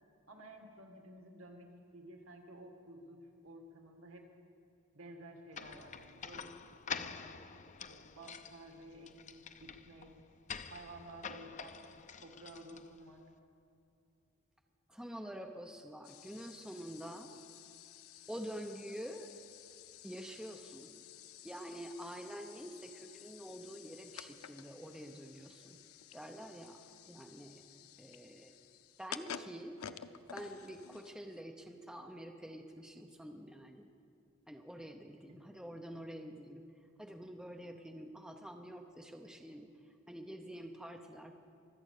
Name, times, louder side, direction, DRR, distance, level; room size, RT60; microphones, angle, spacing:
voice 1, 0.3-4.3 4.9-7.3 7.7-10.1 10.7-13.2, right 1 dB, 75° right, 3 dB, 2.0 m, -53 dB
sound 1, 5.5-13.2, left 6 dB, 35° left, 0.5 m, -47 dB
voice 2, 14.9-17.3 18.3-19.3 20.0-20.9 21.4-25.8 26.1-27.6 28.0-28.5 29.0-29.8 30.3-33.9 34.5-36.6 37.0-39.7 40.1-41.4, equal, 5° right, 4 dB, 0.7 m, -47 dB
sound 2, 16.0-31.4, left 9 dB, 90° left, 0.6 m, -52 dB
23.5 x 8.8 x 6.6 m, 2.6 s
head